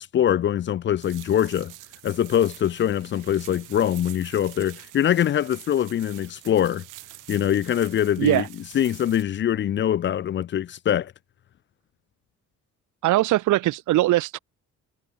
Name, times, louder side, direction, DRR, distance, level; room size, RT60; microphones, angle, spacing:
voice 1, 0.0-1.7 2.0-6.8 7.3-8.4 8.7-11.1, left 10 dB, 40° left, 0.5 m, -23 dB
sound 1, 1.0-9.2, right 17 dB, 90° right, 2.1 m, -46 dB
voice 2, 13.0-14.4, right 16 dB, 70° right, 1.0 m, -21 dB
cardioid pair, 145°, 31 cm